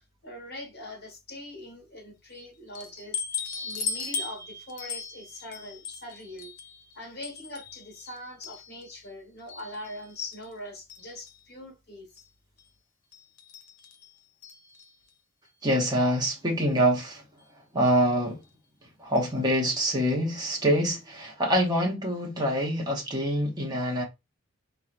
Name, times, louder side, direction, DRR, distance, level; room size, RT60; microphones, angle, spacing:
voice 1, 0.0-6.5 6.9-12.1, left 1 dB, 50° left, 1.4 m, -42 dB
sound 1, 2.7-9.1 9.5-10.5 10.9-11.5 12.2-12.3 12.6-12.7 13.1-15.1 16.1-16.2 16.6-16.7 17.8-18.1 19.2-19.4 19.7-19.8 20.1-20.2, left 5 dB, 85° left, 0.6 m, -39 dB
voice 2, 15.6-17.2 17.7-18.4 19.0-24.0, equal, 20° right, 0.8 m, -25 dB
4.3 x 2.0 x 2.4 m
head